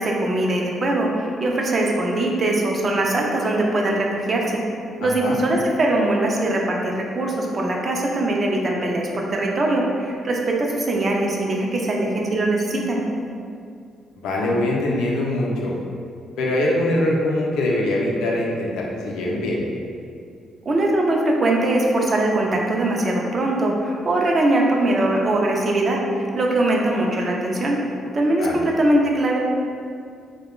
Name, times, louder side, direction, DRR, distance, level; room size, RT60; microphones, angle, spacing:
voice 1, 0.0-4.6 5.0-13.0 20.7-27.8 28.1-29.4, right 1 dB, 40° right, -1 dB, 0.4 m, -21 dB
voice 2, 5.0-5.4 14.1-15.7 16.4-19.6 28.4-28.6, left 1 dB, 90° left, -2 dB, 0.4 m, -23 dB
2.3 x 2.1 x 3.0 m, 2.3 s
cardioid pair, 90°, 0 cm